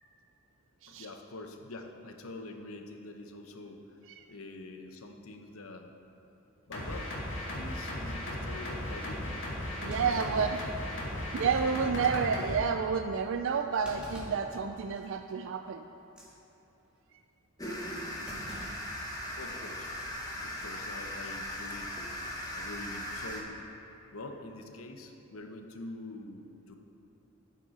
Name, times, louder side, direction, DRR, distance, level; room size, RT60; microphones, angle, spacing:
voice 1, 0.9-4.0 4.3-5.9 6.7-7.1 7.5-11.3 11.7-12.2 19.2-19.9 20.4-21.9 22.3-23.6 24.1-26.8, left 2 dB, 85° left, 4 dB, 0.9 m, -45 dB
sound 1, 6.7-12.5, left 1 dB, 60° left, 2.2 m, -36 dB
Thump thud, 9.0-9.1 9.9-11.2 11.6-11.7 12.2-12.4 13.8-14.5 15.0-15.2 16.0-16.3 18.3-19.5 19.8-19.9 21.0-21.4, equal, 5° right, 1.9 m, -46 dB
voice 2, 9.8-10.6 11.3-15.8, right 6 dB, 65° right, 7 dB, 0.4 m, -30 dB
sound 2, 17.6-23.4, left 1 dB, 20° left, 1.3 m, -38 dB
12.0 x 9.6 x 4.2 m, 2.9 s
head